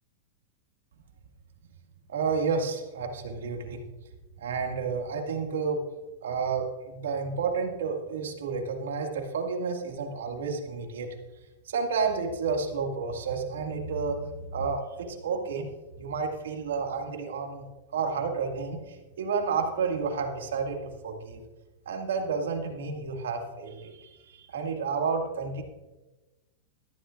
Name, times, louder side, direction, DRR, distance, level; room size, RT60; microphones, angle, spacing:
voice 1, 2.1-3.8 4.4-5.8 6.2-11.1 11.7-15.7 16.0-17.7 17.9-20.8 21.0-21.4 21.9-25.6, right 5 dB, 85° right, 3 dB, 2.1 m, -31 dB
14.5 x 13.5 x 2.5 m, 1.1 s
hypercardioid pair, 130°, 0 cm